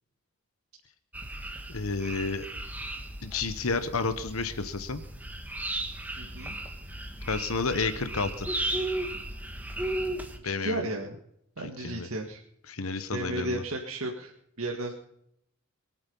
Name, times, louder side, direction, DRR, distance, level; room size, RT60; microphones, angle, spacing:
sound 1, 1.1-10.4, right 1 dB, 10° right, 1.5 m, -35 dB
voice 1, 1.7-2.5 3.2-5.0 7.3-8.5 10.4-10.9 11.6-12.1 12.7-13.6, left 4 dB, 80° left, 11 dB, 1.2 m, -31 dB
voice 2, 6.2-6.5 10.4-11.2 11.6-12.4 13.1-14.3 14.6-14.9, right 1 dB, 75° right, 1 dB, 1.9 m, -33 dB
22.5 x 9.0 x 5.5 m, 0.74 s
head